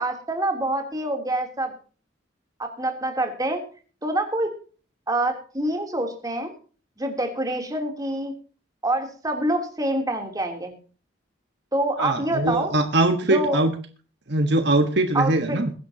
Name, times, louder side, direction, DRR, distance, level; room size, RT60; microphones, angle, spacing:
voice 1, 0.0-1.7 2.6-3.6 4.0-4.5 5.1-6.5 7.0-8.3 8.8-10.8 11.7-12.7 13.3-13.6 15.1-15.6, right 1 dB, 20° right, 4 dB, 3.2 m, -26 dB
voice 2, 12.0-13.8 14.3-15.7, right 2 dB, 65° right, 7 dB, 1.4 m, -22 dB
22.0 x 11.0 x 2.9 m, 0.39 s
head